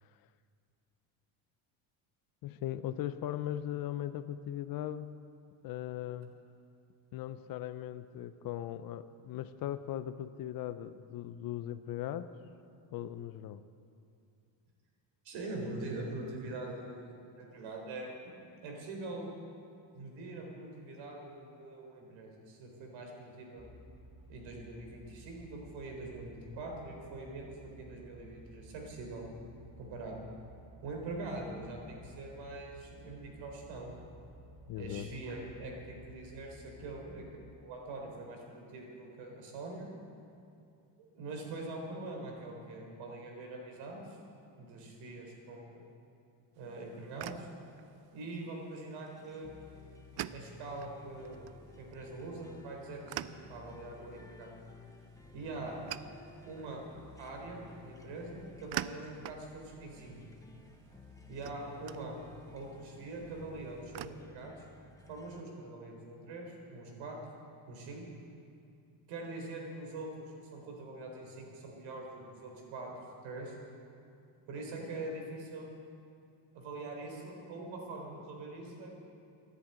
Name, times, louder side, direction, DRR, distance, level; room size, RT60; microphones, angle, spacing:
voice 1, 2.4-5.2 5.6-6.3 7.1-12.3 12.9-13.6 34.7-35.1, left 12 dB, 50° left, 13 dB, 0.5 m, -39 dB
voice 2, 15.2-18.1 18.6-19.3 19.9-23.6 24.3-29.3 29.8-30.2 30.8-33.9 34.7-39.9 41.1-44.2 44.6-45.8 46.6-47.5 48.1-49.5 50.3-51.4 51.8-54.5 55.3-55.8 56.5-56.9 57.2-60.2 61.3-62.2 62.5-64.5 65.1-67.2 67.7-68.0 69.1-72.9 73.2-73.5 74.5-75.7 76.5-78.9, right 2 dB, 70° right, 1 dB, 4.0 m, -43 dB
sound 1, 23.6-37.3, right 1 dB, 15° right, 1.4 m, -55 dB
sound 2, 46.6-64.1, right 14 dB, 55° right, 0.5 m, -48 dB
sound 3, 49.1-65.4, left 3 dB, 5° left, 0.8 m, -55 dB
13.0 x 11.0 x 8.8 m, 2.5 s
cardioid pair, 160°, 47 cm